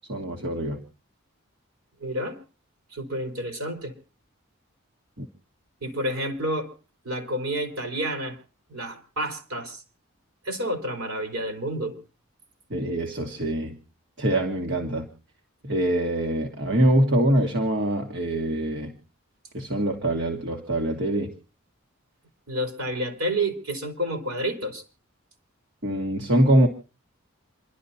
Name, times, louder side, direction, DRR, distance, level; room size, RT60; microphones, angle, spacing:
voice 1, 0.1-0.8 5.2-5.3 12.7-13.8 14.2-15.1 15.6-18.9 19.5-21.3 25.8-26.7, right 1 dB, 55° right, 3 dB, 1.5 m, -24 dB
voice 2, 2.0-2.4 2.9-3.9 5.8-6.7 7.0-8.4 8.7-9.8 10.4-12.0 22.5-24.8, right 1 dB, 75° right, 3 dB, 4.0 m, -29 dB
28.0 x 12.0 x 2.8 m, 0.34 s
head